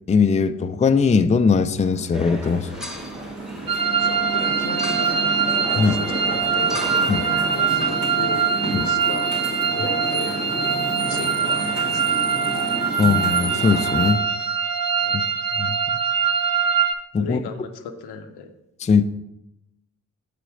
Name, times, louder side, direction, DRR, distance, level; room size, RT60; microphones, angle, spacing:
voice 1, 0.1-2.7 5.7-6.0 7.1-7.3 8.7-8.9 13.0-14.2 15.1-15.2 15.6-15.7 17.1-17.4 18.8-19.2, left 5 dB, 20° left, 9 dB, 0.4 m, -20 dB
sound 1, 1.6-14.1, right 1 dB, 80° right, 2.8 m, -31 dB
sound 2, 2.1-8.0, left 1 dB, ahead, 1.0 m, -37 dB
sound 3, 3.7-16.9, right 6 dB, 55° right, 0.8 m, -23 dB
voice 2, 3.9-5.3 5.7-7.0 7.5-9.3 9.7-10.5 11.0-12.2 15.0-15.3 17.2-18.5, left 5 dB, 75° left, 6 dB, 0.8 m, -37 dB
6.7 x 5.0 x 4.9 m, 0.89 s
hypercardioid pair, 45°, 40 cm